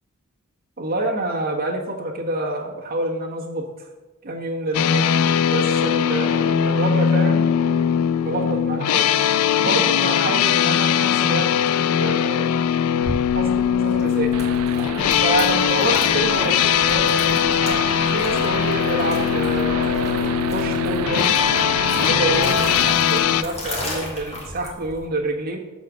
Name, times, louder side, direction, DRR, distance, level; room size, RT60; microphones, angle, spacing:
voice 1, 0.8-3.9 4.2-5.2 5.5-7.5 8.2-9.1 9.6-11.5 12.0-12.5 13.3-14.4 15.2-21.4 22.0-22.7 23.0-25.6, right 2 dB, 45° right, -2 dB, 1.4 m, -27 dB
sound 1, 4.7-23.4, left 9 dB, 85° left, 0.3 m, -20 dB
sound 2, 13.0-25.1, left 1 dB, 30° left, 1.7 m, -35 dB
sound 3, 14.3-22.9, right 8 dB, 80° right, 0.4 m, -31 dB
7.4 x 4.3 x 6.3 m, 1.2 s
head